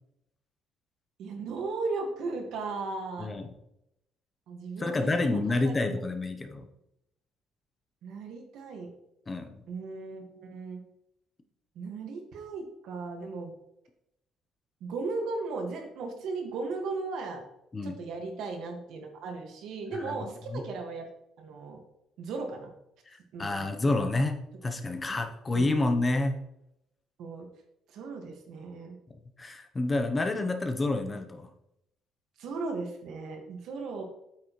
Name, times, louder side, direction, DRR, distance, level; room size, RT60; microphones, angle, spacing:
voice 1, 1.2-3.3 4.5-5.8 8.0-8.9 9.7-10.8 11.8-13.5 14.8-17.4 17.8-21.1 21.4-21.8 22.2-22.7 23.3-23.7 24.0-24.1 25.5-26.0 27.2-27.5 27.9-29.0 32.4-34.0, right 3 dB, 70° right, 3 dB, 1.7 m, -36 dB
voice 2, 3.2-3.5 4.8-6.7 9.3-9.6 17.7-18.0 19.9-20.2 20.5-20.6 23.1-24.4 24.6-26.4 29.4-31.5, left 2 dB, 20° left, 6 dB, 0.8 m, -29 dB
8.5 x 6.2 x 3.1 m, 0.81 s
cardioid pair, 130°, 0 cm